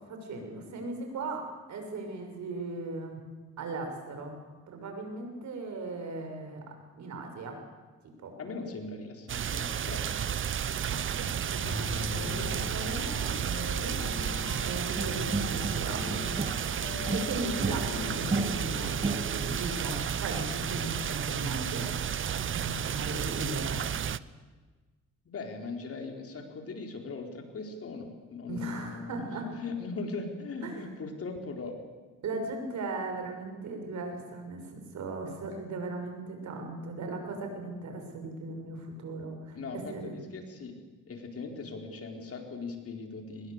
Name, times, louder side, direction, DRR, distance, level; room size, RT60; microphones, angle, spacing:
voice 1, 0.1-3.2 3.6-4.4 4.7-6.6 7.0-7.6 8.2-8.3 10.9-14.0 14.6-16.3 17.1-21.9 22.3-23.8 28.5-29.5 30.6-30.8 32.2-40.2, right 3 dB, 65° right, 4 dB, 6.3 m, -37 dB
voice 2, 8.4-10.5 25.2-31.8 39.5-40.7 41.1-43.5, left 4 dB, 50° left, 3 dB, 4.5 m, -39 dB
sound 1, 9.3-24.2, right 9 dB, 40° right, 0.7 m, -32 dB
sound 2, 11.6-20.3, left 6 dB, 75° left, 4.0 m, -42 dB
sound 3, 15.0-16.7 17.1-19.6, right 3 dB, 20° right, 1.2 m, -33 dB
23.5 x 21.0 x 8.2 m, 1.3 s
cardioid pair, 90°, 30 cm